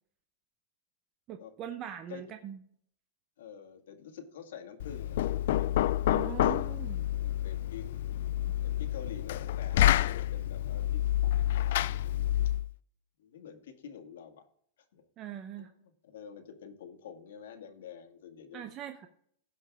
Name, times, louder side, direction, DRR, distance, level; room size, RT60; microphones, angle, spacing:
voice 1, 1.3-2.6 6.1-7.1 15.2-15.7 18.5-19.1, right 10 dB, 25° right, 6 dB, 0.6 m, -41 dB
voice 2, 3.4-5.3 6.1-6.7 7.2-7.9 8.6-11.0 11.5-11.9 13.2-14.5 14.9-15.1 15.6-18.7, left 7 dB, 85° left, 5 dB, 1.9 m, -48 dB
Knock, 4.8-12.7, left 13 dB, 60° left, 0.3 m, -28 dB
16.0 x 5.6 x 3.5 m, 0.63 s
supercardioid pair, 170°, 0 cm